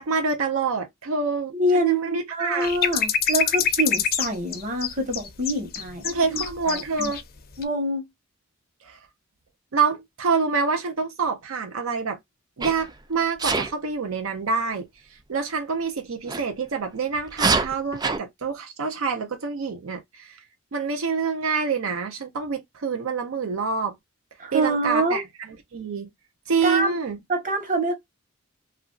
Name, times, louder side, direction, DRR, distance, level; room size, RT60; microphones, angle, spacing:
voice 1, 0.0-2.7 6.0-7.2 8.8-9.0 9.7-12.2 12.6-14.9 15.3-20.4 20.7-24.0 24.5-25.2 25.7-26.1 26.5-27.2, right 5 dB, 80° right, 0.6 m, -26 dB
voice 2, 1.5-7.1 7.6-8.1 24.4-25.2 26.6-27.0 27.3-27.9, right 1 dB, 40° right, 1.0 m, -26 dB
sound 1, 2.6-7.2 7.5-7.6, left 8 dB, 45° left, 0.5 m, -25 dB
Sneeze, 12.6-12.9 13.4-13.7 16.3-16.4 17.3-18.2, right 4 dB, 20° right, 0.4 m, -24 dB
3.0 x 2.5 x 2.3 m
head